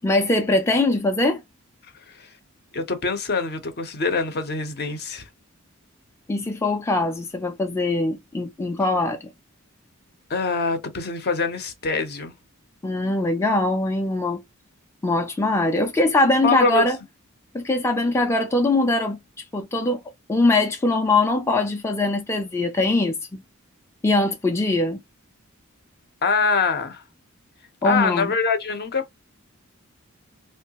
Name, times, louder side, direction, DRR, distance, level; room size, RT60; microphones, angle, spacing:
voice 1, 0.0-1.4 6.3-9.2 12.8-14.4 15.0-17.0 17.5-19.2 19.5-20.0 20.3-23.4 24.0-25.0 27.8-28.3, left 2 dB, 15° left, 0.4 m, -22 dB
voice 2, 2.7-5.3 10.3-12.3 16.4-16.9 26.2-27.0 27.8-29.1, left 4 dB, 50° left, 0.7 m, -24 dB
3.2 x 2.3 x 2.8 m
head